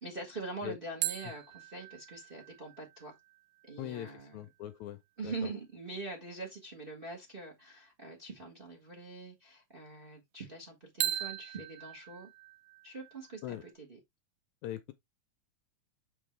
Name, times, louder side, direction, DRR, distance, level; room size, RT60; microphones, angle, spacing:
voice 1, 0.0-3.1 3.6-4.5 5.2-12.3 12.8-14.0, right 3 dB, 25° right, 1.4 m, -43 dB
sound 1, 1.0-4.6 11.0-13.7, right 13 dB, 80° right, 1.5 m, -40 dB
voice 2, 3.8-5.0 5.2-5.3 13.4-13.6 14.6-14.9, left 13 dB, 75° left, 1.8 m, -41 dB
7.7 x 4.7 x 3.2 m
omnidirectional pair, 3.7 m